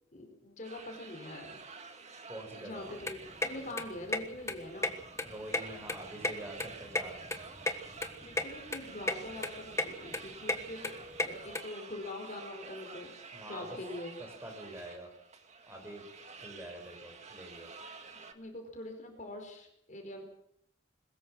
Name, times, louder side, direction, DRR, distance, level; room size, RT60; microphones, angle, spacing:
voice 1, 0.1-1.6 2.6-5.0 8.2-13.1 13.4-14.2 18.3-20.2, left 2 dB, 45° left, 3 dB, 5.0 m, -44 dB
sound 1, 0.6-18.3, right 4 dB, 40° right, 2.0 m, -50 dB
voice 2, 2.3-2.8 5.2-7.2 13.3-13.7 14.4-15.1 15.7-16.0 16.4-17.7, right 1 dB, 15° right, 2 dB, 6.1 m, -45 dB
sound 2, 2.8-11.6, left 2 dB, 15° left, 1.5 m, -35 dB
22.0 x 20.5 x 6.4 m, 0.72 s
head